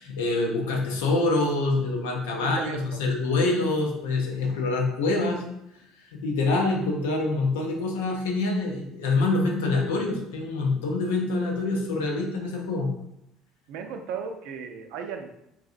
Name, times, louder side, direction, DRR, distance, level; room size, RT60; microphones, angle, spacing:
voice 1, 0.0-5.4 6.1-12.9, left 3 dB, 85° left, 1 dB, 0.7 m, -25 dB
voice 2, 2.4-3.0 13.7-15.3, right 6 dB, 75° right, 5 dB, 0.4 m, -35 dB
3.8 x 2.7 x 2.5 m, 0.81 s
hypercardioid pair, 70°, 0 cm